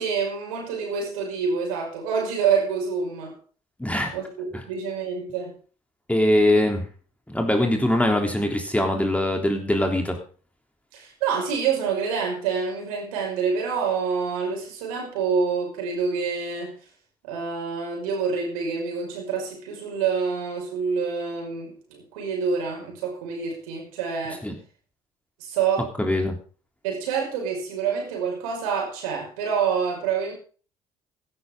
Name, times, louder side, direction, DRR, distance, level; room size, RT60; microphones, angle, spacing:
voice 1, 0.0-3.3 4.1-5.5 10.9-16.8 17.2-24.4 25.4-25.9 26.8-30.3, right 6 dB, 75° right, 1 dB, 5.7 m, -27 dB
voice 2, 3.8-4.1 6.1-6.8 7.3-10.2 24.4-24.5 26.0-26.4, left 1 dB, 5° left, 3 dB, 3.5 m, -22 dB
16.0 x 12.5 x 3.8 m, 0.39 s
figure-of-eight pair, 55°, 18 cm